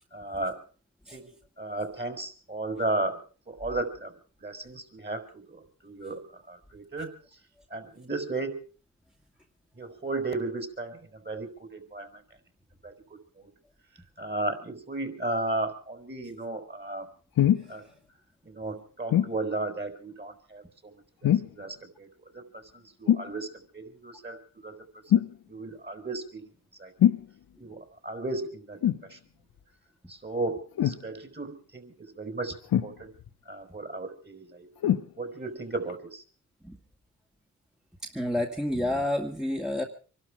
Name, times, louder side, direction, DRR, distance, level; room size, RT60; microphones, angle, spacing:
voice 1, 0.1-0.6 1.1-3.2 3.5-4.1 4.4-7.4 7.7-8.6 9.7-12.2 12.8-13.5 14.2-17.1 17.7-17.9 18.4-22.1 22.3-26.5 26.8-27.1 27.6-29.2 30.1-33.1 33.4-34.7 35.2-36.2, right 2 dB, 30° right, 6 dB, 4.6 m, -35 dB
sound 1, 17.4-17.7 19.1-19.4 21.2-21.6 23.1-23.3 25.1-25.4 27.0-27.3 28.8-29.1 30.8-31.0 32.7-33.3 34.8-35.1 35.9-36.0, left 11 dB, 75° left, 1.1 m, -23 dB
voice 2, 38.0-39.8, left 1 dB, ahead, 1 dB, 2.2 m, -29 dB
24.5 x 12.5 x 4.8 m, 0.40 s
cardioid pair, 55°, 36 cm